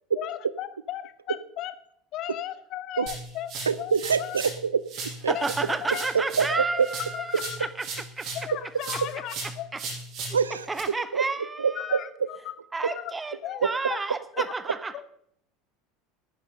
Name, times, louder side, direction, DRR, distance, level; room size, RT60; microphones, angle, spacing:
voice 1, 0.2-1.7 2.1-4.4 5.3-6.1 6.5-7.7 8.3-9.7 11.7-12.5 12.8-13.1 13.4-14.0 14.3-14.5 14.9-15.0, left 13 dB, 50° left, 14 dB, 1.0 m, -36 dB
sound 1, 3.1-4.6 4.9-8.5 8.8-10.8, right 3 dB, 50° right, 6.3 m, -37 dB
voice 2, 3.7-5.4 6.1-6.9 10.3-10.7 11.1-11.3 11.6-12.0 13.6-13.7, right 6 dB, 85° right, 18 dB, 0.4 m, -25 dB
voice 3, 5.3-7.8 8.2-8.3 10.7-12.0 12.7-15.0, right 3 dB, 15° right, 13 dB, 1.1 m, -31 dB
10.0 x 10.0 x 6.4 m, 0.72 s
figure-of-eight pair, 75°, 0 cm